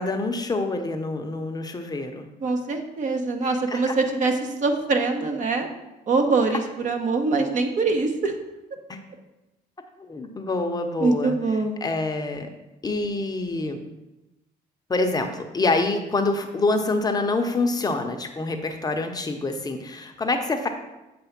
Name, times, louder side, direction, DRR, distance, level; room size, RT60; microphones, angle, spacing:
voice 1, 0.0-2.3 3.7-3.9 8.9-9.0 10.1-11.3 11.8-12.5 12.8-13.8 14.9-20.7, left 3 dB, 25° left, 5 dB, 0.7 m, -26 dB
voice 2, 2.4-5.7 6.1-8.4 11.0-11.8, right 3 dB, 50° right, 5 dB, 0.9 m, -23 dB
7.9 x 3.3 x 5.8 m, 0.99 s
cardioid pair, 110°, 17 cm